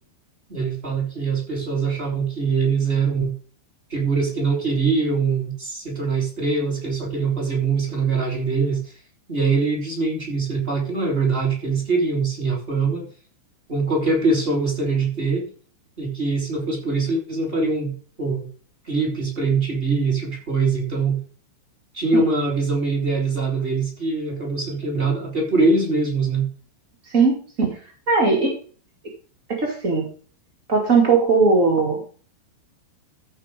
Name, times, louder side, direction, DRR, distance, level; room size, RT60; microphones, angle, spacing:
voice 1, 0.5-3.3 3.9-8.9 9.3-13.1 13.7-15.5 16.0-17.9 18.2-18.5 18.8-21.2 21.9-26.5, right 4 dB, 15° right, -1 dB, 2.9 m, -23 dB
voice 2, 27.1-27.8 28.1-28.6 29.5-30.1 30.7-32.0, right 4 dB, 55° right, -1 dB, 0.8 m, -19 dB
15.0 x 5.0 x 5.0 m, 0.42 s
omnidirectional pair, 5.4 m